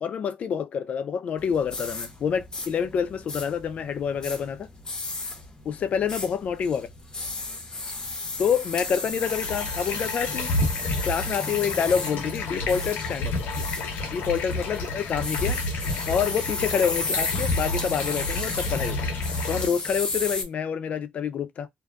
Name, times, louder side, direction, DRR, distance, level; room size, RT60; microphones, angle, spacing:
voice 1, 0.0-4.7 5.7-6.9 8.4-10.5 11.0-13.3 14.1-15.6 16.1-19.1 19.5-21.7, left 7 dB, 50° left, 0.4 m, -27 dB
sound 1, 1.4-20.4, left 3 dB, 25° left, 0.7 m, -34 dB
sound 2, 9.2-19.7, left 2 dB, 90° left, 0.7 m, -30 dB
2.6 x 2.3 x 2.2 m
cardioid pair, 130°, 3 cm